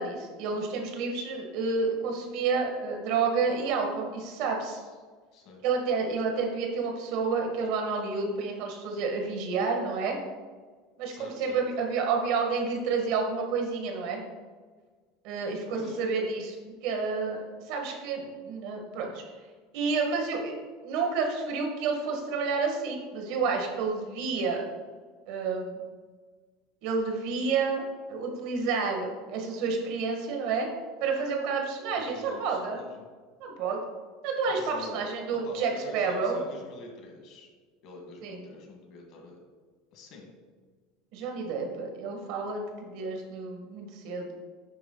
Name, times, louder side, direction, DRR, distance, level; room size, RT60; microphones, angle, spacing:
voice 1, 0.0-4.8 5.6-10.2 11.0-14.2 15.2-16.5 16.8-19.2 19.7-20.5 20.8-24.6 25.3-25.8 26.8-27.8 28.1-30.7 31.0-32.8 33.4-33.8 34.2-36.4 38.2-38.4 41.1-44.3, right 4 dB, 65° right, 2 dB, 1.5 m, -30 dB
voice 2, 11.1-11.6 15.7-16.0 32.0-33.1 34.5-35.0 35.4-37.5 37.8-39.4 39.9-40.3, left 2 dB, 60° left, 1 dB, 1.7 m, -45 dB
9.4 x 3.4 x 3.8 m, 1.5 s
supercardioid pair, 115°, 0 cm